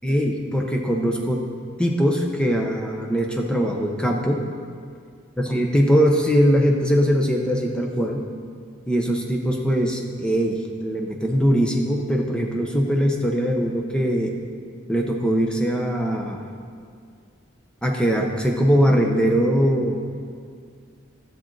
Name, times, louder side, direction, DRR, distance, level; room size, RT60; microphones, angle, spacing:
voice 1, 0.0-1.4 1.8-4.4 5.4-8.2 8.9-14.3 14.9-16.4 17.8-20.2, equal, 5° left, 1 dB, 0.7 m, -21 dB
12.0 x 7.4 x 3.9 m, 2.2 s
head